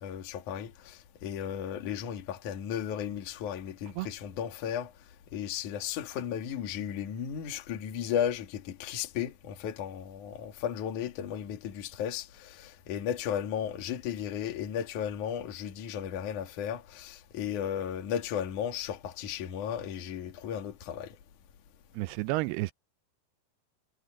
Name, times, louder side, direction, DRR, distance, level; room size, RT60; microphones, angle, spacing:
voice 1, 0.0-4.9 5.3-21.2, left 9 dB, 50° left, 3.1 m, -35 dB
voice 2, 21.9-22.7, right 20 dB, 85° right, 2.3 m, -31 dB
omnidirectional pair, 5.0 m